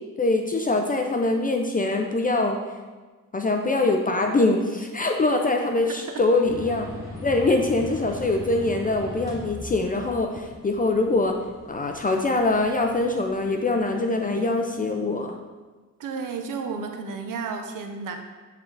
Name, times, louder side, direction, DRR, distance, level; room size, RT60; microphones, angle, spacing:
voice 1, 0.2-2.6 3.3-6.9 7.2-11.3 11.7-15.3, left 2 dB, 25° left, 3 dB, 0.4 m, -23 dB
sound 1, 6.4-14.5, left 2 dB, 10° right, 1.9 m, -40 dB
voice 2, 16.0-18.2, right 5 dB, 80° right, 5 dB, 0.7 m, -32 dB
8.2 x 3.9 x 3.3 m, 1.3 s
cardioid pair, 110°, 32 cm